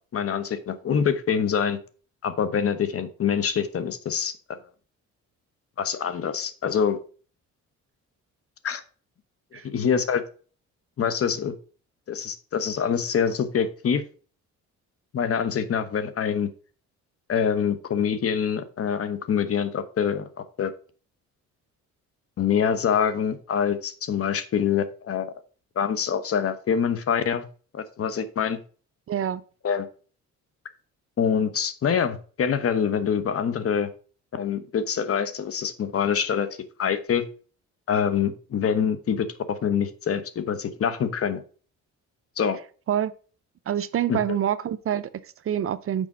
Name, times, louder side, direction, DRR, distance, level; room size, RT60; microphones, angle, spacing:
voice 1, 0.1-1.8 2.2-4.3 5.8-7.0 8.6-8.8 9.6-10.2 11.0-11.5 12.1-14.0 15.1-16.5 17.3-20.2 20.6-20.7 22.4-25.3 25.8-27.4 27.7-28.6 29.6-29.9 31.2-33.9 34.3-36.5 36.8-37.2 37.9-41.4 42.4-42.6 44.1-44.4, left 7 dB, 50° left, 1.0 m, -25 dB
voice 2, 29.1-29.4 42.9-43.1 43.7-46.1, right 10 dB, 45° right, 0.5 m, -26 dB
6.3 x 5.0 x 5.3 m
cardioid pair, 90°, 30 cm